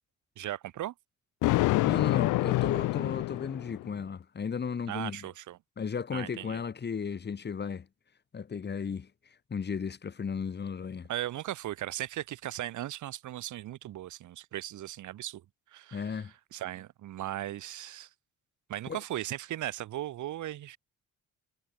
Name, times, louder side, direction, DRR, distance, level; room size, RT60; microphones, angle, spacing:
voice 1, 0.4-0.9 4.9-5.6 6.1-6.6 11.1-15.4 15.7-16.2 16.5-18.1 18.7-20.8, right 13 dB, 75° right, 1.7 m, -37 dB
Thunder, 1.4-3.9, left 19 dB, 85° left, 0.6 m, -27 dB
voice 2, 1.8-5.3 5.8-7.9 8.3-9.1 9.5-11.1 15.9-16.3 18.9-19.0, left 6 dB, 35° left, 1.5 m, -35 dB
cardioid pair, 90°, 30 cm